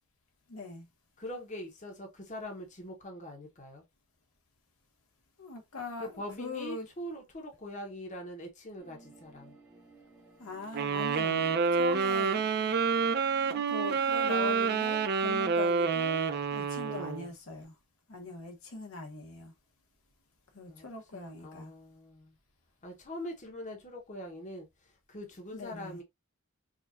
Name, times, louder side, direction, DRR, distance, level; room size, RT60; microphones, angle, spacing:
voice 1, 0.5-0.9 5.4-6.9 10.4-11.5 11.7-12.4 13.5-17.7 18.1-19.5 20.5-21.7 25.5-26.0, left 3 dB, 75° left, 1.1 m, -41 dB
voice 2, 1.2-3.8 6.0-9.5 16.8-17.3 20.6-20.8 21.1-22.3 22.8-26.0, left 1 dB, 35° left, 0.9 m, -43 dB
sound 1, 8.8-15.5, right 3 dB, 5° right, 0.9 m, -56 dB
sound 2, 10.7-17.3, right 5 dB, 45° right, 0.5 m, -28 dB
4.9 x 2.4 x 2.5 m
head